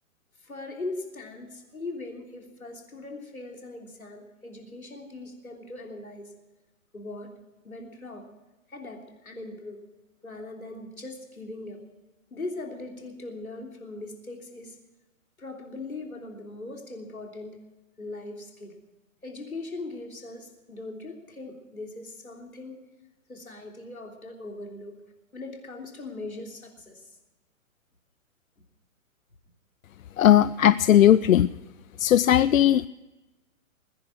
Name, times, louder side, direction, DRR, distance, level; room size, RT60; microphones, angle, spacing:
voice 1, 0.4-6.3 6.9-7.3 7.6-8.3 8.7-9.8 10.2-11.8 12.3-14.8 15.4-17.6 18.0-18.8 19.2-22.8 23.3-25.0 25.3-27.1, left 2 dB, 90° left, 1 dB, 3.4 m, -40 dB
voice 2, 30.2-31.5 32.0-32.9, left 11 dB, 70° left, 17 dB, 0.5 m, -18 dB
20.0 x 10.5 x 6.2 m, 1.1 s
figure-of-eight pair, 120°, 41 cm